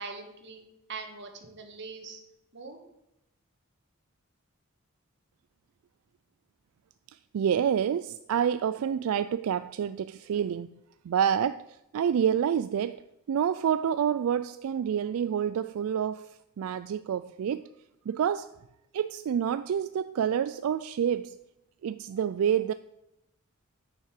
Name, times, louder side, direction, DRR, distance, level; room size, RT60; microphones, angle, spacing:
voice 1, 0.0-2.2 2.5-2.8, right 4 dB, 55° right, 1.5 m, -42 dB
voice 2, 7.1-17.7 18.1-18.5 18.9-21.4 21.8-22.7, right 8 dB, 85° right, 0.3 m, -28 dB
9.4 x 5.5 x 6.6 m
head